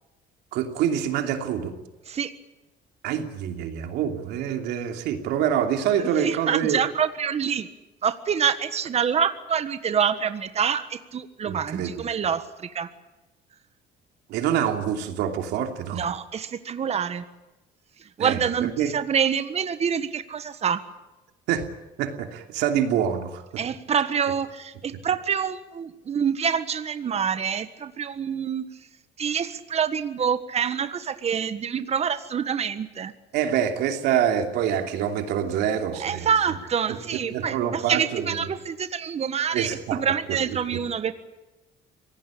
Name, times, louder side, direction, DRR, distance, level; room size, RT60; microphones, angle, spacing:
voice 1, 0.5-1.7 3.0-6.8 11.5-12.0 14.3-16.0 18.2-18.9 21.5-21.7 22.0-23.4 33.3-36.3 37.3-38.5 39.5-40.0 40.5-40.8, right 9 dB, 85° right, 5 dB, 2.9 m, -26 dB
voice 2, 6.0-7.7 8.0-12.9 15.9-17.2 18.0-20.8 23.6-28.6 29.2-33.1 36.0-41.1, right 7 dB, 40° right, 11 dB, 1.5 m, -26 dB
25.0 x 18.0 x 8.7 m, 1.1 s
cardioid pair, 110°, 17 cm